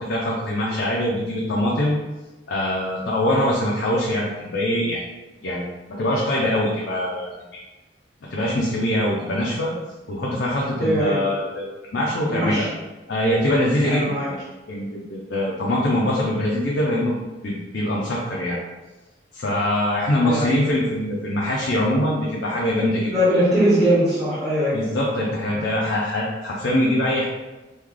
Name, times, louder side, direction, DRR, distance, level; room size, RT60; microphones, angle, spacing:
voice 1, 0.1-2.0 2.5-5.0 5.4-5.7 6.0-7.3 8.2-9.7 10.1-11.7 11.9-12.7 13.1-14.4 14.7-17.2 17.4-18.6 19.3-23.1 24.7-27.3, left 1 dB, 70° left, -4 dB, 0.5 m, -23 dB
voice 2, 10.8-11.2 12.3-12.7 13.8-14.3 20.2-20.6 23.1-24.8, equal, ahead, -10 dB, 0.7 m, -20 dB
3.1 x 2.3 x 3.7 m, 1.1 s
head